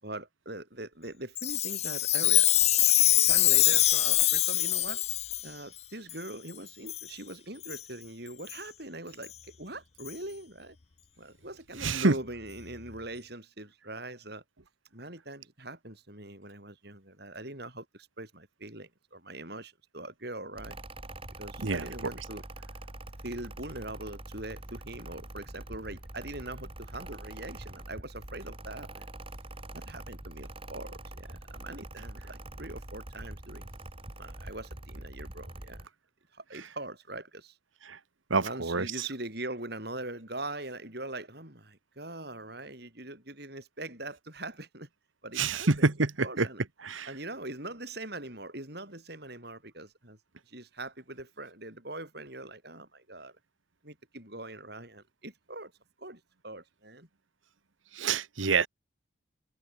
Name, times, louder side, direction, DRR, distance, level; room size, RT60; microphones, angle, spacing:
voice 1, 0.0-2.7 3.3-5.0 5.4-10.8 11.2-14.4 14.9-20.8 21.4-22.4 23.2-29.0 29.7-33.7 34.2-35.9 36.3-37.6 38.4-44.9 45.2-45.9 46.2-46.6 47.1-50.2 50.5-53.4 53.8-55.7 56.0-57.1, right 2 dB, 55° right, 7.8 m, -42 dB
Chime, 1.4-5.4 6.1-6.2 6.9-7.1 7.6-7.8 8.5-8.6 9.2-9.3 10.1-10.2, left 14 dB, 35° left, 0.4 m, -24 dB
voice 2, 11.8-12.1 21.6-21.8 38.3-38.8 45.4-46.1 46.4-46.5 46.8-47.1 58.0-58.7, right 3 dB, 80° right, 1.4 m, -26 dB
Mechanical fan, 20.6-35.9, right 1 dB, 30° right, 2.7 m, -44 dB
head